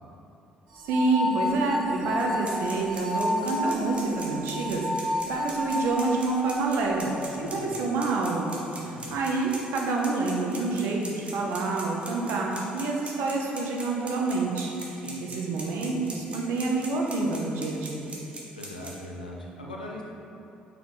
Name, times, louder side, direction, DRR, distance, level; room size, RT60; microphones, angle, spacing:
sound 1, 0.7-6.6, left 1 dB, 75° right, 1.4 m, -31 dB
voice 1, 0.9-8.5 8.8-18.0, right 3 dB, 60° right, -1 dB, 0.8 m, -28 dB
sound 2, 2.2-18.9, right 2 dB, 25° right, 1.3 m, -40 dB
voice 2, 8.8-9.2 15.0-15.2 18.5-20.0, left 1 dB, 85° left, -2 dB, 0.5 m, -40 dB
5.9 x 4.6 x 3.7 m, 2.9 s
figure-of-eight pair, 45°, 4 cm